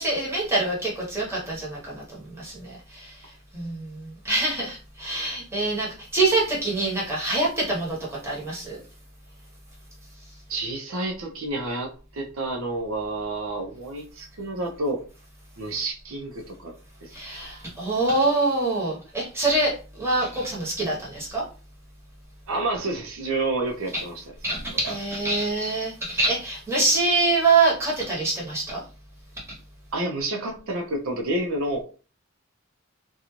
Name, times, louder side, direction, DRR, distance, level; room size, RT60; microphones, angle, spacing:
voice 1, 0.0-3.2 3.5-8.8 17.1-21.4 23.9-24.0 24.4-28.8, right 2 dB, 15° right, -6 dB, 1.0 m, -25 dB
voice 2, 10.5-15.0 15.6-16.7 17.0-17.1 22.5-24.2 24.8-24.9 29.9-31.8, right 2 dB, 85° right, 1 dB, 0.6 m, -29 dB
2.5 x 2.3 x 3.0 m, 0.37 s
head